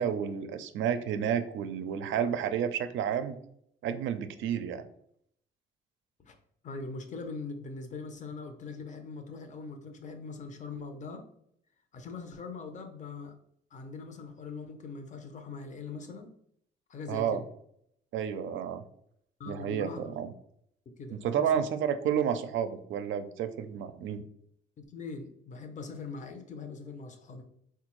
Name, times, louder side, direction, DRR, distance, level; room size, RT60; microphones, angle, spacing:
voice 1, 0.0-3.4 3.8-4.9 17.1-17.4 18.1-18.8 19.5-20.3 21.1-24.2, right 8 dB, 75° right, 10 dB, 0.4 m, -31 dB
voice 2, 6.6-11.2 11.9-13.3 13.7-16.3 16.9-17.4 19.4-20.1 20.9-21.6 24.8-27.4, left 4 dB, 40° left, 6 dB, 0.6 m, -42 dB
3.6 x 2.3 x 3.0 m, 0.70 s
cardioid pair, 90°, 20 cm